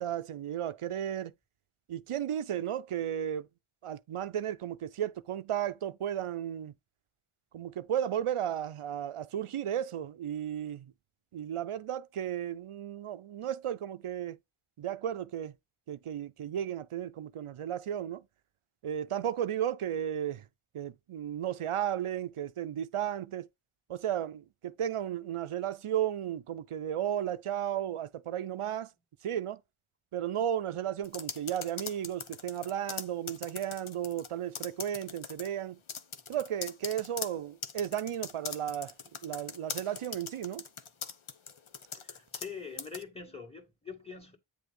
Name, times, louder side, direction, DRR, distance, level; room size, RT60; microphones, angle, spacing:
voice 1, 0.0-1.3 1.9-3.5 3.8-6.7 7.5-10.9 11.3-14.4 14.8-15.5 15.9-18.2 18.8-20.4 20.7-23.5 23.9-28.9 29.2-29.6 30.1-35.8 36.3-38.9 39.2-40.6, right 10 dB, 80° right, 0.6 m, -34 dB
sound 1, 31.0-34.3 34.5-35.5 35.9-42.5 42.8-43.0, left 6 dB, 70° left, 0.8 m, -41 dB
voice 2, 41.9-44.4, left 5 dB, 10° left, 2.1 m, -44 dB
8.8 x 3.3 x 5.2 m
wide cardioid pair, 45°, 50 cm